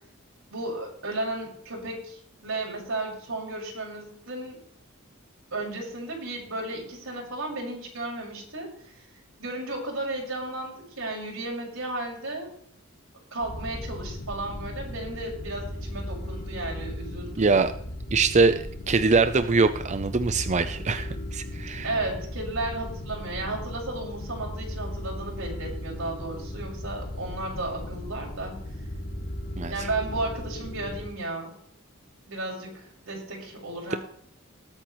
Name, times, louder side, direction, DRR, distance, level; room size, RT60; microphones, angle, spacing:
voice 1, 0.5-4.6 5.5-8.9 9.4-12.5 13.3-17.5 21.8-28.6 29.7-31.5 32.3-34.0, right 2 dB, 85° right, -2 dB, 5.6 m, -34 dB
sound 1, 13.4-31.1, left 1 dB, 55° left, 1.7 m, -36 dB
voice 2, 17.4-17.7 18.1-21.9 29.6-29.9, right 4 dB, 35° right, 10 dB, 0.6 m, -23 dB
20.5 x 8.9 x 3.1 m, 0.67 s
head